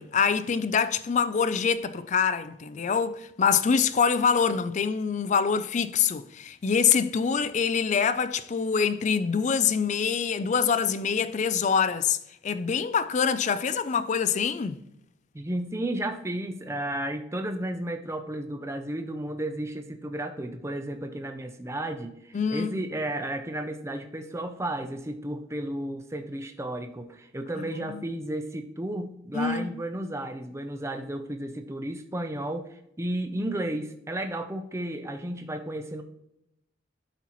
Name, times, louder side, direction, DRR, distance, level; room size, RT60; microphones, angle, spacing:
voice 1, 0.0-12.2 12.4-14.8 22.3-22.8 27.6-28.0 29.3-29.7, left 6 dB, 40° left, 0.4 m, -25 dB
voice 2, 15.3-36.0, right 1 dB, 15° right, 0.5 m, -33 dB
12.0 x 4.2 x 3.0 m
head